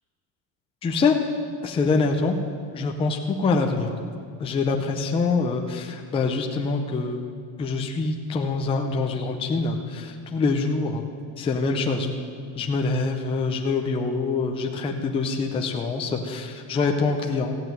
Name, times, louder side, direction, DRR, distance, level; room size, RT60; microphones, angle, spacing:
voice 1, 0.8-1.1 1.6-2.4 2.7-3.9 4.4-7.2 7.6-11.0 11.4-12.1 12.5-17.6, left 4 dB, 10° left, 2 dB, 0.6 m, -25 dB
15.0 x 8.0 x 9.1 m, 2.2 s
cardioid pair, 160°, 49 cm